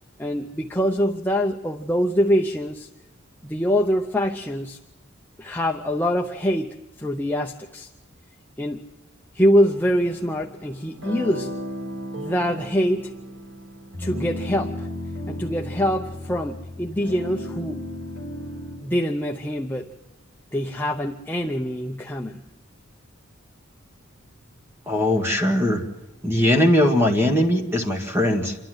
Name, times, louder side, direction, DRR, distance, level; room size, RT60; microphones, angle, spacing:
voice 1, 0.2-2.9 3.4-4.8 5.4-7.9 8.6-8.8 9.3-11.5 12.1-13.1 14.0-14.9 15.3-17.8 18.8-19.9 20.5-22.4, equal, 10° left, 1 dB, 0.6 m, -24 dB
sound 1, 9.5-18.8, left 1 dB, 85° right, 5.0 m, -35 dB
voice 2, 24.9-25.8 26.2-28.6, left 1 dB, 10° right, 2 dB, 1.9 m, -20 dB
28.0 x 12.0 x 7.8 m, 1.0 s
head